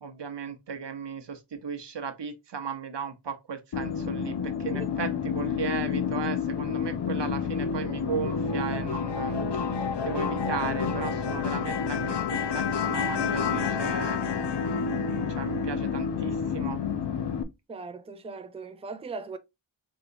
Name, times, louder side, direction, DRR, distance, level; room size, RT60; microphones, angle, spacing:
voice 1, 0.0-14.2 15.1-16.8, right 6 dB, 60° right, 0.9 m, -36 dB
sound 1, 3.7-17.4, left 6 dB, 60° left, 0.6 m, -29 dB
voice 2, 17.7-19.4, right 4 dB, 15° right, 0.4 m, -39 dB
4.0 x 2.8 x 2.6 m
wide cardioid pair, 70°, 47 cm